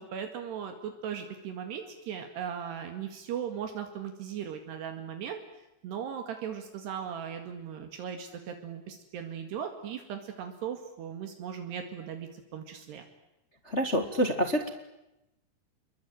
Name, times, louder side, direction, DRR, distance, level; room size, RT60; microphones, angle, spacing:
voice 1, 0.0-5.4 5.8-13.0, right 8 dB, 75° right, 5 dB, 4.1 m, -38 dB
voice 2, 13.6-14.7, equal, 45° left, 6 dB, 0.8 m, -27 dB
29.0 x 22.5 x 9.2 m, 0.91 s
omnidirectional pair, 4.9 m